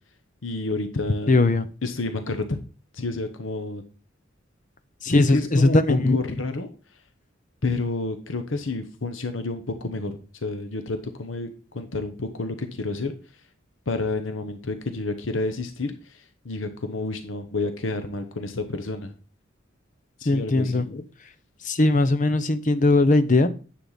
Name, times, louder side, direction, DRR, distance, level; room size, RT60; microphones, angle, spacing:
voice 1, 0.4-1.5 1.8-2.6 2.9-3.8 5.1-6.7 7.6-13.1 13.9-19.1 20.2-20.8, left 3 dB, 80° left, 7 dB, 1.0 m, -30 dB
voice 2, 1.3-1.7 5.0-6.2 20.2-21.0 21.6-23.5, left 2 dB, 40° left, 12 dB, 0.8 m, -19 dB
10.0 x 7.6 x 4.1 m, 0.37 s
head